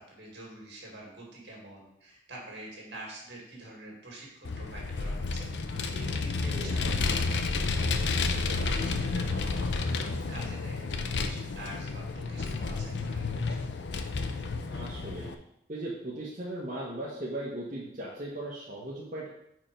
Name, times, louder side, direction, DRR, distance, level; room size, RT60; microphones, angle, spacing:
voice 1, 0.0-5.5 5.9-7.9 8.5-13.2 13.5-13.6, right 1 dB, 65° right, -2 dB, 2.1 m, -46 dB
Vehicle, 4.5-15.3, left 3 dB, 70° left, 0.5 m, -31 dB
voice 2, 6.4-6.7 14.7-15.3 15.7-19.3, right 1 dB, 40° right, -6 dB, 1.1 m, -37 dB
4.9 x 4.4 x 5.1 m, 0.79 s
head